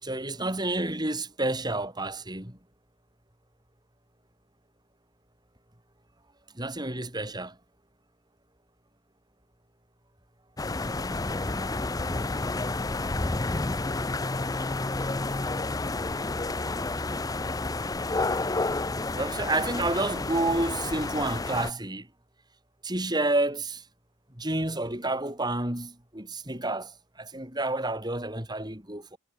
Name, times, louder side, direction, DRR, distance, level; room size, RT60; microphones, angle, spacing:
voice 1, 0.0-2.6 6.6-7.6 19.1-22.1 22.8-23.8 24.4-29.2, right 2 dB, 20° right, 5.4 m, -30 dB
sound 1, 10.6-21.7, left 2 dB, 15° left, 0.5 m, -30 dB
head